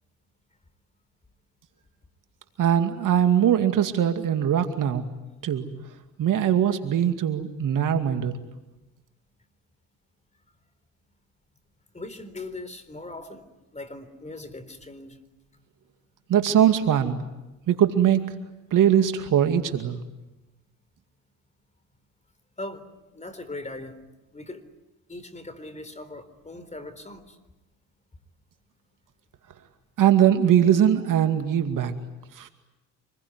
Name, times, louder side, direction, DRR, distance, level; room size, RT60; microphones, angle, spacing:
voice 1, 2.6-5.0 5.4-5.7 6.2-8.3 16.3-17.2 17.7-18.2 18.7-20.0 30.0-31.9 32.4-32.5, right 9 dB, 55° right, 7 dB, 2.4 m, -21 dB
voice 2, 11.9-13.5 13.7-15.2 22.6-24.0 24.3-24.6 25.1-27.4, left 2 dB, 20° left, 12 dB, 4.0 m, -39 dB
27.0 x 21.5 x 9.7 m, 1.0 s
supercardioid pair, 70°, 38 cm